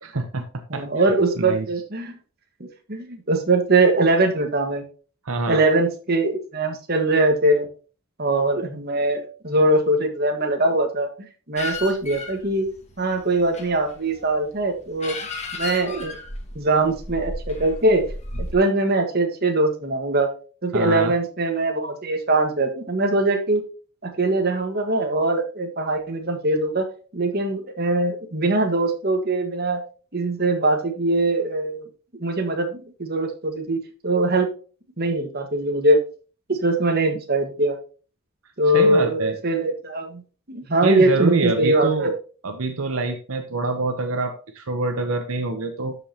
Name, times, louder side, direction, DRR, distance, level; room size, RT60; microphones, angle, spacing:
voice 1, 0.0-0.5 0.7-0.8 1.4-1.7 5.2-5.6 20.7-21.1 38.7-39.4 40.8-42.1 42.4-46.0, right 3 dB, 75° right, 6 dB, 1.0 m, -25 dB
voice 2, 0.7-2.1 2.6-4.8 5.5-7.7 8.2-11.1 11.5-12.7 13.0-15.1 15.6-16.2 16.5-18.0 18.4-20.3 20.6-23.6 24.0-26.9 27.1-29.8 30.1-31.8 32.1-34.5 35.0-36.0 36.5-37.8 38.6-40.2 40.5-42.1, right 2 dB, 45° right, 4 dB, 1.6 m, -22 dB
sound 1, 11.6-18.5, left 2 dB, 30° left, 1.6 m, -34 dB
12.5 x 5.4 x 2.9 m, 0.37 s
head